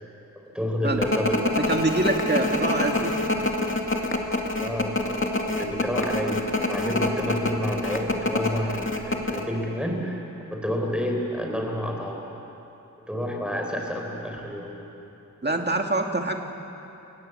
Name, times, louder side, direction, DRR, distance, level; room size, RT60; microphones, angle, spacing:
voice 1, 0.4-1.6 4.6-10.2 10.5-12.2 13.1-14.9, equal, 5° right, 0 dB, 4.1 m, -29 dB
sound 1, 1.0-9.4, left 2 dB, 40° left, 2.3 m, -26 dB
voice 2, 1.7-3.2 15.4-16.3, right 2 dB, 30° right, 3 dB, 2.1 m, -25 dB
30.0 x 17.0 x 7.9 m, 2.9 s
wide cardioid pair, 85°, 33 cm